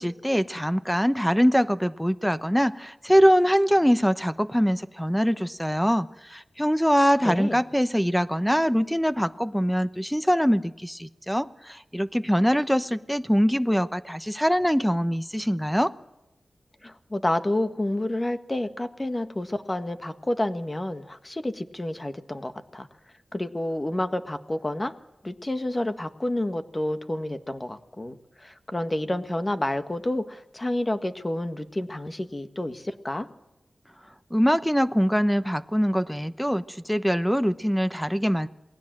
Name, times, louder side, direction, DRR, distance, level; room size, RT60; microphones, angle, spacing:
voice 1, 0.0-15.9 34.3-38.5, equal, ahead, 12 dB, 0.9 m, -23 dB
voice 2, 7.2-7.6 16.8-22.9 23.3-24.9 25.2-33.3, left 1 dB, 25° left, 9 dB, 1.6 m, -29 dB
28.0 x 19.5 x 7.6 m, 0.95 s
wide cardioid pair, 100°, 0 cm